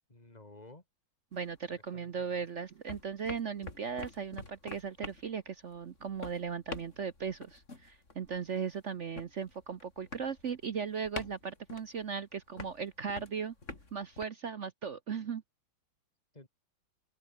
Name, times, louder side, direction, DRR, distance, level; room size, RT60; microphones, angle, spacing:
voice 1, 0.1-0.8 1.7-2.4 16.3-16.5, left 2 dB, 20° left, 4.4 m, -54 dB
sound 1, 1.3-2.4 2.7-14.2, left 3 dB, 35° left, 4.1 m, -47 dB
voice 2, 1.3-13.5 13.9-15.4, right 6 dB, 55° right, 0.8 m, -37 dB
open air
omnidirectional pair, 2.2 m